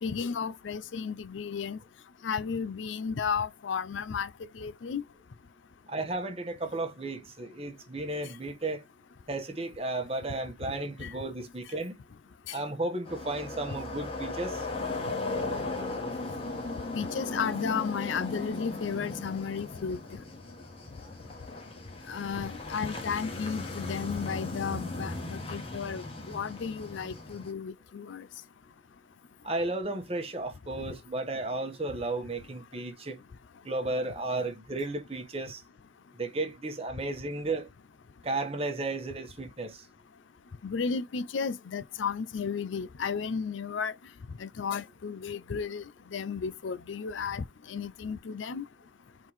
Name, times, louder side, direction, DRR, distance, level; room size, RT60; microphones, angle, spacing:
voice 1, 0.0-1.8 2.2-4.3 4.5-5.0 11.0-11.1 12.5-12.6 16.9-20.2 22.1-28.2 40.6-43.9 44.4-45.8 46.1-48.6, left 6 dB, 80° left, 0.5 m, -33 dB
voice 2, 5.9-8.8 9.3-11.9 12.5-14.7 29.4-33.2 33.6-35.6 36.2-37.7 38.2-39.8, right 2 dB, 30° right, 1.1 m, -34 dB
sound 1, 13.0-27.5, left 2 dB, 30° left, 1.3 m, -37 dB
4.5 x 3.8 x 3.1 m
head